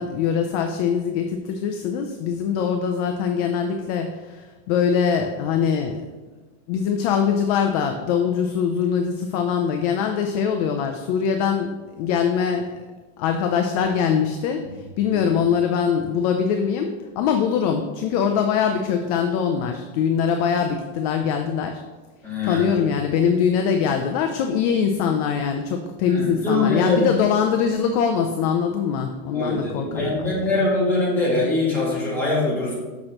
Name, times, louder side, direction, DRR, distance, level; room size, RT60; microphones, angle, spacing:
voice 1, 0.0-6.0 6.7-12.7 13.2-21.8 22.4-30.4, left 7 dB, 40° left, 5 dB, 0.4 m, -23 dB
voice 2, 22.2-22.7 26.1-27.0 29.3-32.7, left 2 dB, 5° left, -9 dB, 2.0 m, -23 dB
6.4 x 6.0 x 2.9 m, 1.3 s
supercardioid pair, 170°, 30 cm